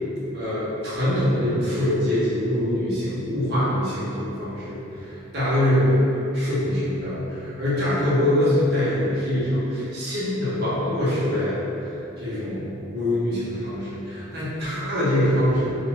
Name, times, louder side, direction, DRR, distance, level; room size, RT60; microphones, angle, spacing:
voice 1, 0.3-6.0 6.3-12.6 12.9-15.8, left 1 dB, 50° right, -10 dB, 0.8 m, -24 dB
2.5 x 2.5 x 3.0 m, 2.8 s
head